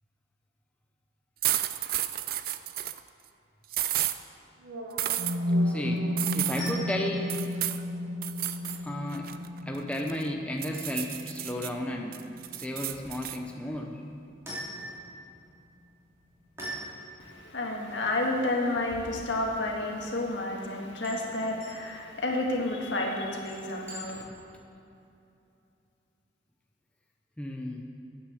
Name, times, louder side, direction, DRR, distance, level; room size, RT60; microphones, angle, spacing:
sound 1, 1.4-3.0 3.7-4.2 5.0-5.4 6.2-6.7 7.3-7.8 8.2-8.8 9.1-10.2 10.6-11.7 12.1-13.4, right 13 dB, 50° right, 0.4 m, -31 dB
sound 2, 4.6-12.6, left 1 dB, 70° right, 1.2 m, -33 dB
voice 1, 5.6-6.1 6.3-7.3 8.8-9.3 9.7-12.2 12.5-14.0 27.4-27.8, left 1 dB, 5° left, 1 dB, 0.7 m, -33 dB
sound 3, 6.5-24.5, right 1 dB, 15° right, 3.2 m, -46 dB
voice 2, 17.3-24.2, left 2 dB, 70° left, 0 dB, 1.8 m, -30 dB
10.0 x 9.0 x 7.0 m, 2.8 s
head